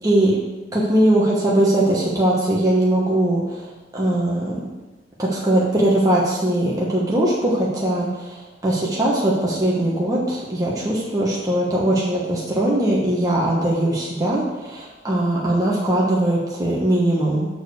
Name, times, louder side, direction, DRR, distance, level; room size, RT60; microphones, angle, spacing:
voice 1, 0.0-0.4 0.7-3.7 3.9-4.6 5.2-17.5, right 1 dB, 20° right, -5 dB, 1.1 m, -20 dB
6.6 x 4.7 x 6.4 m, 1.2 s
head